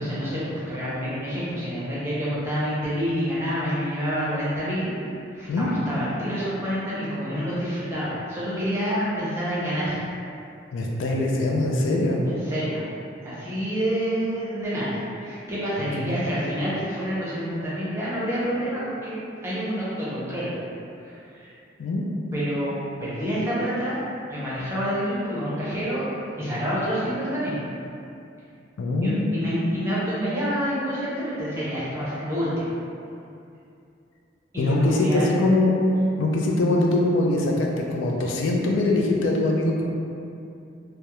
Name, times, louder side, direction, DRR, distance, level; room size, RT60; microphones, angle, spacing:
voice 1, 0.0-4.9 5.3-10.0 12.3-12.8 13.2-20.5 21.0-21.5 22.3-24.0 24.3-26.0 26.4-27.6 29.0-32.7 34.5-35.3, equal, 15° right, -9 dB, 0.5 m, -28 dB
voice 2, 10.7-12.2 16.0-16.3 21.8-22.1 28.8-29.3 34.6-35.7 36.2-39.8, left 2 dB, 80° left, -2 dB, 0.3 m, -22 dB
2.3 x 2.0 x 2.9 m, 2.6 s
head